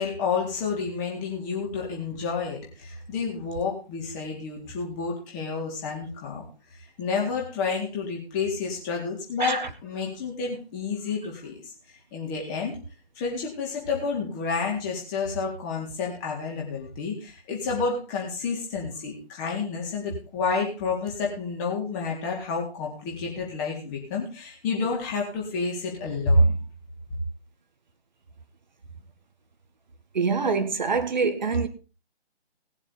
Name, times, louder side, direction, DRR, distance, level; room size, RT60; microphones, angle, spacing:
voice 1, 0.0-6.4 7.0-11.7 12.1-12.8 13.2-26.6, left 3 dB, 15° left, 3.9 m, -29 dB
voice 2, 30.1-31.7, right 5 dB, 45° right, 1.7 m, -25 dB
19.5 x 7.3 x 5.2 m
figure-of-eight pair, 145°, 32 cm